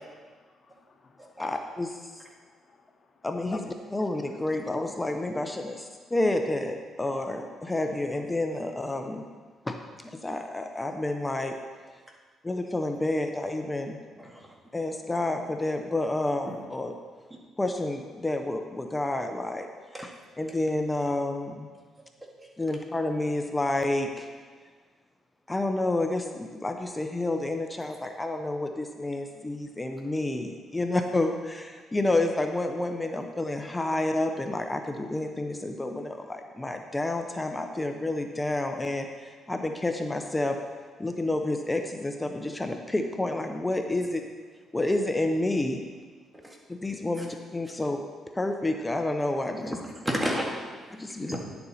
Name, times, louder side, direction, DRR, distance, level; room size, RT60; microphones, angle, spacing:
voice 1, 0.2-1.4 2.3-3.1 3.5-3.7, left 4 dB, 40° left, 4 dB, 1.0 m, -48 dB
voice 2, 1.4-2.2 3.2-3.6 3.9-9.2 9.6-9.8 10.1-11.6 12.4-14.0 14.7-16.9 17.6-19.7 20.0-20.1 20.4-21.7 22.6-24.3 25.5-40.6 41.0-44.2 44.7-45.8 46.8-48.1 48.3-49.8 51.0-51.3, left 2 dB, 15° left, 5 dB, 0.7 m, -29 dB
voice 3, 14.2-14.5 16.5-16.6 19.9-20.0 22.4-22.5 46.4-46.6 47.2-47.3 49.6-50.5 51.3-51.4, equal, 15° right, -1 dB, 1.8 m, -31 dB
10.5 x 6.9 x 4.1 m, 1.5 s
cardioid pair, 90°, 0 cm